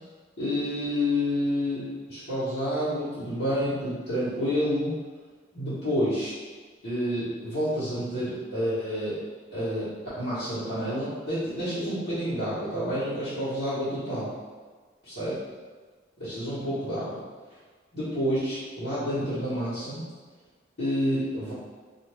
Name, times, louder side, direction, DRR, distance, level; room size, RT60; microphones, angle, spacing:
voice 1, 0.4-5.0 5.5-6.3 6.8-9.2 9.5-9.9 10.1-14.3 15.2-15.3 16.2-17.2 17.9-20.0 20.8-21.5, equal, 80° left, -15 dB, 1.2 m, -29 dB
2.5 x 2.4 x 3.2 m, 1.4 s
head